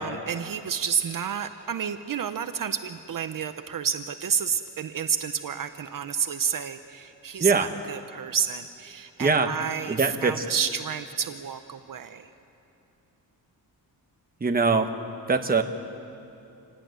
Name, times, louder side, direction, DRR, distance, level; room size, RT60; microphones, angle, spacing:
voice 1, 0.0-12.3, right 7 dB, 60° right, 9 dB, 0.9 m, -30 dB
voice 2, 9.9-10.4 14.4-14.9 15.3-15.6, right 4 dB, 25° right, 5 dB, 1.2 m, -22 dB
27.0 x 17.5 x 9.4 m, 2.7 s
wide cardioid pair, 150°, 38 cm